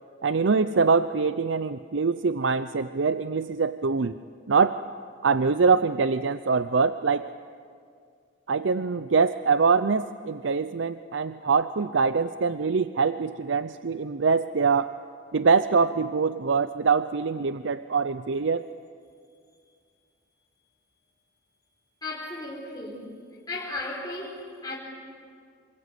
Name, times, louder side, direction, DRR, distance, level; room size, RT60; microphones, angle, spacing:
voice 1, 0.2-4.2 4.5-4.8 5.2-7.3 8.5-14.9 15.3-18.7, right 5 dB, 80° right, 12 dB, 0.6 m, -24 dB
voice 2, 22.0-23.1 23.5-24.8, left 2 dB, 20° left, -4 dB, 4.4 m, -35 dB
27.5 x 26.0 x 8.4 m, 2.2 s
head